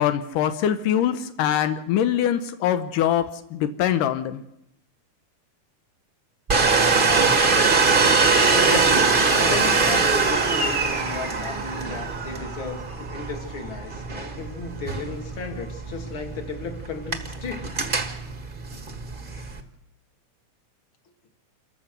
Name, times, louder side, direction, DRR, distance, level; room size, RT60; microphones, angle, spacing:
voice 1, 0.0-3.3 3.5-4.4, left 10 dB, 85° left, 10 dB, 2.4 m, -23 dB
Domestic sounds home sounds, 6.5-19.6, right 4 dB, 30° right, 0.9 m, -22 dB
voice 2, 8.5-9.0 9.3-17.7, left 4 dB, 45° left, 4 dB, 2.9 m, -34 dB
27.5 x 14.0 x 6.7 m, 0.84 s
omnidirectional pair, 3.6 m